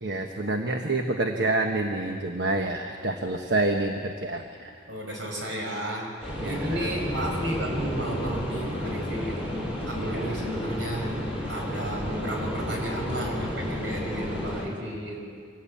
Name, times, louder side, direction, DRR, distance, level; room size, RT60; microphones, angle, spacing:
voice 1, 0.0-4.7 6.4-6.9 9.9-10.4, right 2 dB, 60° right, 4 dB, 1.2 m, -28 dB
voice 2, 4.9-9.5 9.9-11.2 11.5-15.3, right 1 dB, 80° right, 0 dB, 5.8 m, -33 dB
sound 1, 6.2-14.6, equal, 10° right, 6.4 m, -32 dB
24.5 x 18.0 x 8.6 m, 2.2 s
head